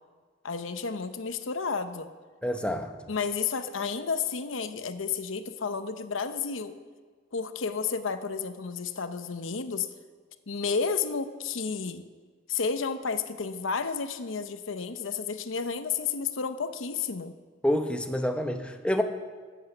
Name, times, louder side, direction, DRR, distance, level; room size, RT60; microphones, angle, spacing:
voice 1, 0.4-2.1 3.1-6.8 7.3-9.9 10.5-12.0 12.5-17.3, left 5 dB, 90° left, 10 dB, 0.8 m, -31 dB
voice 2, 2.4-2.9 17.6-19.0, equal, 5° left, 5 dB, 0.8 m, -27 dB
14.0 x 8.2 x 6.8 m, 1.5 s
head